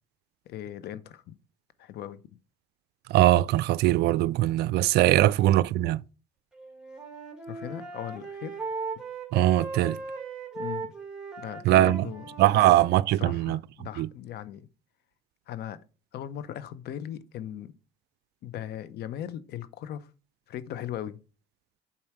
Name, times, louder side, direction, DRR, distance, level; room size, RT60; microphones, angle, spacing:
voice 1, 0.5-1.4 1.8-2.2 5.2-5.4 7.5-8.6 10.5-10.9 11.4-12.3 12.5-12.6 13.2-14.7 15.5-15.8 16.1-17.7 18.4-20.1 20.5-21.2, left 11 dB, 55° left, 0.7 m, -38 dB
voice 2, 3.1-6.0 9.3-10.0 11.6-12.1 12.4-13.6 14.0-14.1, right 14 dB, 60° right, 0.4 m, -21 dB
Wind instrument woodwind instrument, 6.6-13.0, right 4 dB, 5° right, 2.1 m, -38 dB
7.3 x 4.3 x 4.6 m
supercardioid pair, 80°, 20 cm